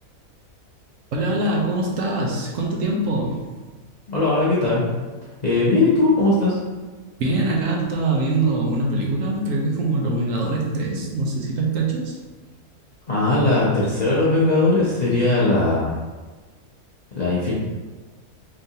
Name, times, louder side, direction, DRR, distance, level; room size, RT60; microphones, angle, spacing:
voice 1, 1.1-3.5 7.2-12.2, right 2 dB, 65° right, -1 dB, 0.9 m, -23 dB
voice 2, 4.1-4.8 5.4-6.6 13.1-15.9 17.2-17.5, left 2 dB, 50° left, -8 dB, 0.5 m, -19 dB
3.7 x 3.1 x 2.7 m, 1.3 s
omnidirectional pair, 1.6 m